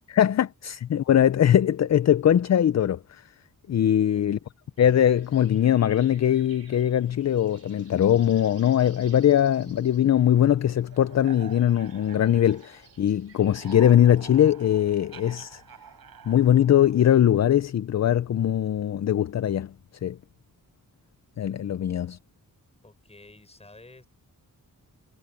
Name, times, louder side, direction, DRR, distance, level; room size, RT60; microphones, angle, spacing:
voice 1, 0.0-3.2 3.7-4.4 4.8-15.6 16.3-19.7 20.0-20.2 21.4-22.2, left 10 dB, 50° left, 0.5 m, -21 dB
voice 2, 4.0-4.4 21.8-22.2 22.8-24.1, left 2 dB, 20° left, 7.0 m, -52 dB
sound 1, 4.8-13.8, right 4 dB, 45° right, 4.4 m, -56 dB
sound 2, 9.5-13.0 13.3-17.4, right 7 dB, 90° right, 7.1 m, -48 dB
wide cardioid pair, 160°, 35 cm